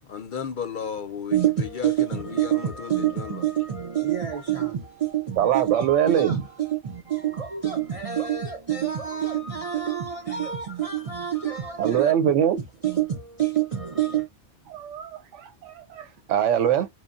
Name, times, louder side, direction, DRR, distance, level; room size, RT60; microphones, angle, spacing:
voice 1, 0.0-3.5, left 7 dB, 55° left, 0.6 m, -34 dB
voice 2, 1.3-12.1 12.8-14.3, right 11 dB, 60° right, 0.3 m, -27 dB
voice 3, 5.4-6.4 11.8-12.6 14.7-16.9, right 9 dB, 90° right, 0.9 m, -23 dB
3.1 x 2.1 x 2.3 m
omnidirectional pair, 1.2 m